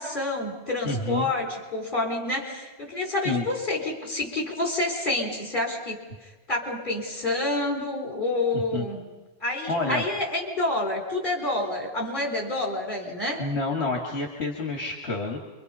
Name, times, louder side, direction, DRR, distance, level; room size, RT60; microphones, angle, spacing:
voice 1, 0.0-6.0 6.5-9.0 9.4-13.5, left 2 dB, 50° left, 1 dB, 4.3 m, -28 dB
voice 2, 0.8-1.3 3.2-3.5 8.5-8.9 9.7-10.0 13.4-15.4, left 3 dB, 70° left, 1 dB, 2.4 m, -28 dB
28.0 x 24.0 x 5.6 m, 1.2 s
omnidirectional pair, 1.1 m